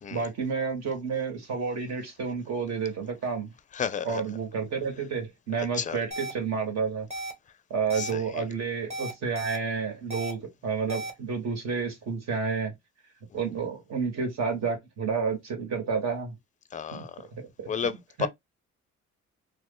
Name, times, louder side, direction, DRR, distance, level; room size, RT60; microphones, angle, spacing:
voice 1, 0.1-3.5 4.0-7.1 7.7-12.7 13.3-16.3 16.9-17.0 17.6-17.9 18.2-18.3, right 5 dB, 60° right, 1.5 m, -30 dB
voice 2, 3.7-4.2 5.7-6.0 7.9-8.4 13.3-13.4 16.7-17.2 17.7-18.3, left 7 dB, 25° left, 0.4 m, -32 dB
sound 1, 6.1-6.3 7.1-7.3 7.9-8.1 8.9-9.6 10.1-10.3 10.9-11.1, right 1 dB, 20° right, 1.2 m, -34 dB
2.6 x 2.4 x 3.7 m
cardioid pair, 90°, 30 cm